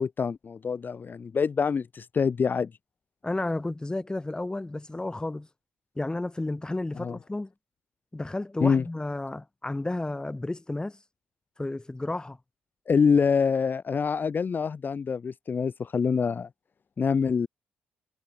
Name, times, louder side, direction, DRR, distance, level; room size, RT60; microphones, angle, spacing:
voice 1, 0.0-2.7 7.0-7.2 8.6-8.8 12.9-16.5 17.0-17.5, left 6 dB, 40° left, 0.6 m, -25 dB
voice 2, 3.2-5.5 5.9-7.5 8.1-11.0 11.6-12.4, left 2 dB, 15° left, 1.1 m, -32 dB
supercardioid pair, 55°, 5 cm